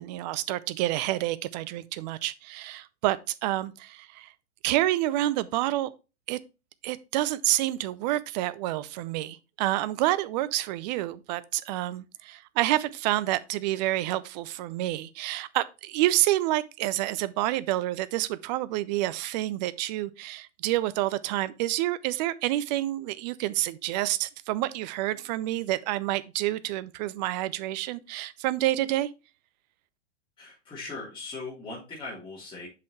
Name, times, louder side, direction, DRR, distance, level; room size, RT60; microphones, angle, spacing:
voice 1, 0.0-4.3 4.6-5.9 6.3-6.4 6.8-29.1, right 15 dB, 35° right, 0.6 m, -28 dB
voice 2, 30.4-32.7, left 3 dB, 15° left, 3.2 m, -39 dB
7.5 x 5.8 x 3.0 m
figure-of-eight pair, 105°, 36 cm